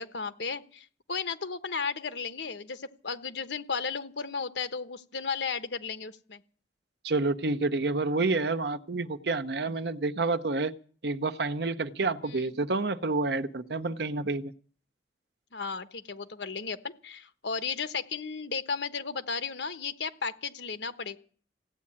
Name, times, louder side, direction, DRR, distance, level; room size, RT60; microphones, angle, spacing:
voice 1, 0.0-6.4 12.2-12.5 15.5-21.2, left 5 dB, 80° left, 1.2 m, -34 dB
voice 2, 7.0-10.7 11.0-14.5, right 3 dB, 65° right, 0.9 m, -29 dB
16.5 x 8.6 x 9.9 m
head